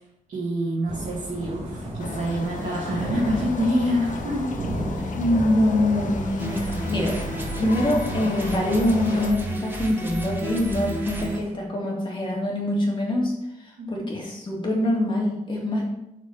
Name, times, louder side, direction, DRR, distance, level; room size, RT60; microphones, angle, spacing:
voice 1, 0.3-4.5 4.9-5.1 13.8-14.1, equal, 70° right, -6 dB, 1.9 m, -26 dB
Thunder / Rain, 0.9-11.5, right 1 dB, 50° right, 2.3 m, -36 dB
sound 1, 2.0-9.3, left 4 dB, 70° left, 0.8 m, -34 dB
voice 2, 5.1-7.3 7.6-13.3 13.6-15.9, left 1 dB, 35° left, -2 dB, 2.0 m, -24 dB
sound 2, 6.4-11.4, right 2 dB, 15° right, 1.1 m, -32 dB
7.2 x 4.4 x 5.5 m, 0.87 s
wide cardioid pair, 170°, 14 cm